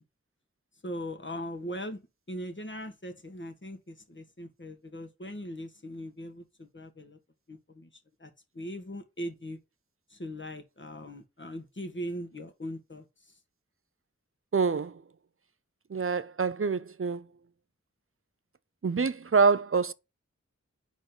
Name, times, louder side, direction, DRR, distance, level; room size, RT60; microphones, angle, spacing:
voice 1, 0.8-2.0 2.3-7.2 7.5-9.6 10.1-13.4, equal, 40° left, 1.6 m, -40 dB
voice 2, 14.5-14.9 15.9-17.2 18.8-19.9, right 5 dB, 50° right, 0.6 m, -26 dB
5.2 x 4.0 x 5.9 m
wide cardioid pair, 45°, 29 cm